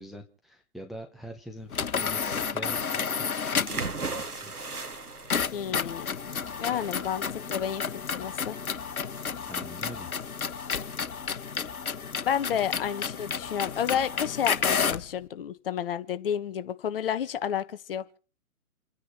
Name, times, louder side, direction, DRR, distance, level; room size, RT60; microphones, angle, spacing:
voice 1, 0.0-4.5 9.5-10.1, equal, ahead, 0.9 m, -44 dB
sound 1, 1.7-3.9 5.3-15.1, left 6 dB, 75° left, 1.3 m, -31 dB
sound 2, 3.7-11.3, right 3 dB, 90° right, 2.1 m, -39 dB
voice 2, 5.5-6.1 6.6-7.9 8.1-8.6 12.2-18.2, left 9 dB, 40° left, 1.4 m, -30 dB
29.5 x 9.9 x 4.4 m
figure-of-eight pair, 135°, 44 cm